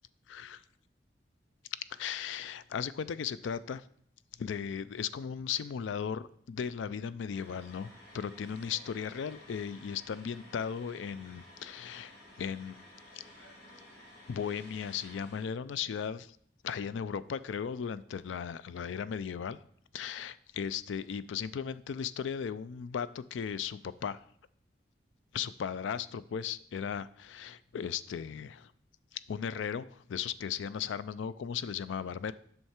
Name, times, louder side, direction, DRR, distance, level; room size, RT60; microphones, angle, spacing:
voice 1, 0.3-0.6 1.9-3.8 4.4-12.1 12.4-12.8 13.1-13.2 14.3-16.4 16.6-19.6 19.9-24.2 25.3-28.7 29.1-32.3, left 7 dB, 85° left, 16 dB, 0.4 m, -36 dB
sound 1, 7.3-15.5, left 1 dB, 65° left, 2.3 m, -54 dB
7.9 x 5.6 x 4.4 m, 0.63 s
head